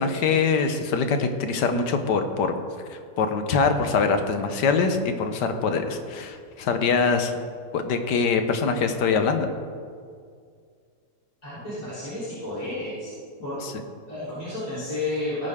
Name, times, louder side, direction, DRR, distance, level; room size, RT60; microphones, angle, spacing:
voice 1, 0.0-2.6 2.9-7.3 7.7-9.5 13.6-13.7, left 5 dB, 85° left, 7 dB, 1.6 m, -23 dB
voice 2, 11.4-13.1 13.4-13.7 14.1-15.5, left 2 dB, 20° left, -12 dB, 3.6 m, -31 dB
17.5 x 9.5 x 3.6 m, 2.1 s
omnidirectional pair, 1.8 m